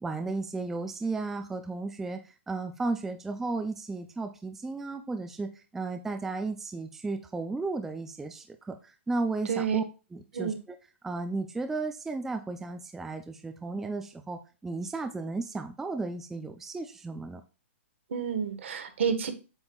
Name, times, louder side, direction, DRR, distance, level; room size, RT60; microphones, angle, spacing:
voice 1, 0.0-2.2 2.5-8.8 9.1-9.8 10.1-10.5 11.0-17.4, right 3 dB, 5° right, 6 dB, 0.3 m, -34 dB
voice 2, 9.5-9.8 10.3-10.6 18.1-19.3, right 6 dB, 70° right, 8 dB, 1.3 m, -29 dB
8.0 x 5.3 x 2.3 m, 0.32 s
hypercardioid pair, 160°, 7 cm